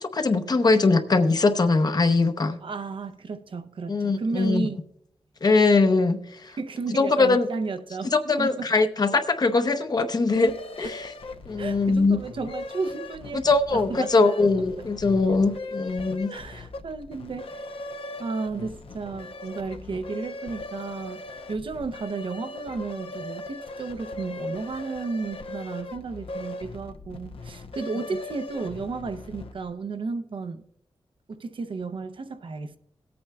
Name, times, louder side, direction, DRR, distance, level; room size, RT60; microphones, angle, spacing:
voice 1, 0.0-2.6 3.9-4.7 5.4-6.2 7.0-7.5 8.1-11.1 11.5-12.2 13.4-16.3, left 3 dB, 45° left, 0.7 m, -21 dB
voice 2, 2.6-4.8 6.6-8.7 11.6-14.9 16.3-17.9 18.2-30.6 31.3-32.8, right 4 dB, 65° right, 0.7 m, -33 dB
sound 1, 10.3-29.7, left 2 dB, 75° left, 0.8 m, -39 dB
18.5 x 8.6 x 2.3 m
wide cardioid pair, 100°, 10 cm